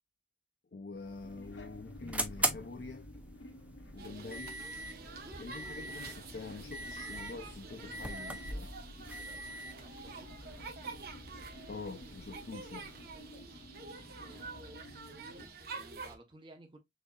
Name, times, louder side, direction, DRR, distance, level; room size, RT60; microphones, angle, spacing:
voice 1, 0.7-3.1 3.9-4.6 5.4-8.7 11.7-12.9, left 3 dB, 60° left, 0.5 m, -46 dB
sound 1, 0.9-13.4, right 2 dB, 10° right, 0.5 m, -42 dB
sound 2, 1.2-15.5, left 1 dB, 90° left, 1.0 m, -53 dB
sound 3, 4.0-16.1, right 4 dB, 55° right, 1.1 m, -48 dB
voice 2, 9.7-10.5 14.2-14.9 15.3-16.8, right 1 dB, 25° right, 0.8 m, -57 dB
6.4 x 2.8 x 2.3 m
head